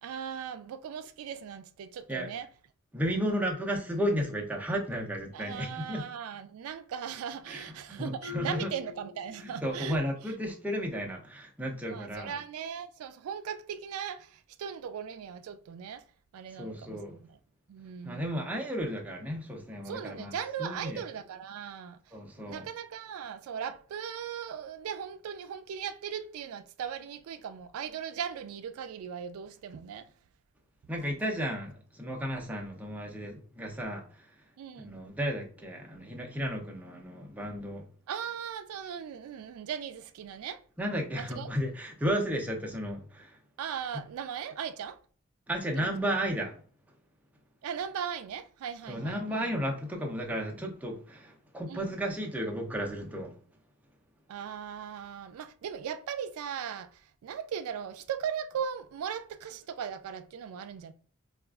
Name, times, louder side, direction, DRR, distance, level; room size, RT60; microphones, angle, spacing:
voice 1, 0.0-2.5 5.3-10.0 11.9-16.0 16.3-17.4 17.7-18.5 19.8-22.0 22.4-30.1 34.6-34.9 38.1-40.6 41.2-41.6 43.6-45.0 45.7-45.9 47.6-49.5 51.7-51.9 54.3-60.9, right 8 dB, 85° right, 0.3 m, -38 dB
voice 2, 2.9-6.0 7.5-8.7 9.4-12.3 16.6-17.2 18.0-20.3 20.6-21.0 22.1-22.7 30.9-34.0 34.8-37.8 40.8-43.3 45.5-46.5 48.9-53.3, equal, 5° right, 0.5 m, -33 dB
Marimba xylophone, 8.2-10.0, left 8 dB, 75° left, 1.1 m, -45 dB
4.0 x 2.4 x 2.3 m
head